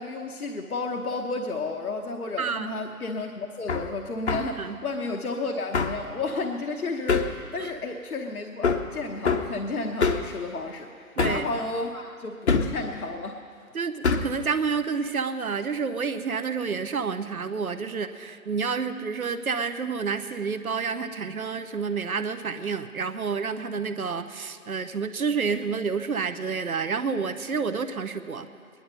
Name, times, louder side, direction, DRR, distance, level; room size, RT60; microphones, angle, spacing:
voice 1, 0.0-13.4, left 3 dB, 70° left, 3 dB, 1.1 m, -32 dB
voice 2, 2.4-2.7 4.6-4.8 7.6-7.7 11.2-11.4 13.7-14.0 14.2-28.5, right 5 dB, 70° right, 9 dB, 1.0 m, -29 dB
Hammer, 3.7-3.9 4.3-4.5 5.7-6.0 7.1-7.4 8.6-8.9 9.3-9.5 10.0-10.3 11.2-11.5 12.5-12.8 14.0-14.4, left 5 dB, 50° left, 0.9 m, -24 dB
20.0 x 11.0 x 5.4 m, 2.2 s
figure-of-eight pair, 145°, 45 cm